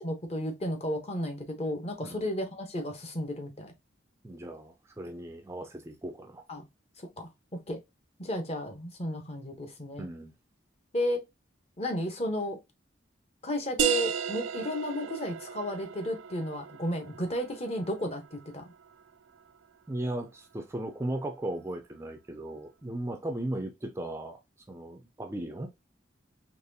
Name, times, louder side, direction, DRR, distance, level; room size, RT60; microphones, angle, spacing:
voice 1, 0.0-3.7 6.5-6.7 7.2-7.3 7.7-7.8 8.2-10.1 10.9-11.2 11.8-12.6 13.4-18.7, equal, 35° left, 0.9 m, -33 dB
voice 2, 4.2-6.4 10.0-10.3 19.9-24.4 24.7-25.7, right 1 dB, 15° right, 0.4 m, -36 dB
sound 1, 13.8-19.1, right 7 dB, 85° right, 0.3 m, -35 dB
4.0 x 3.0 x 2.6 m
head